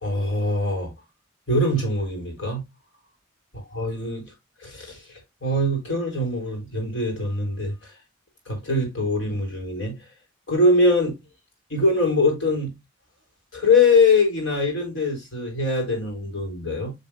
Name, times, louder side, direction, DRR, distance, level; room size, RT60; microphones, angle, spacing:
voice 1, 0.0-0.9 1.5-2.6 3.5-4.3 4.6-5.0 5.4-7.7 8.5-9.9 10.5-11.1 11.7-12.7 13.5-16.9, left 2 dB, 75° left, 4.3 m, -22 dB
9.4 x 5.3 x 2.7 m
head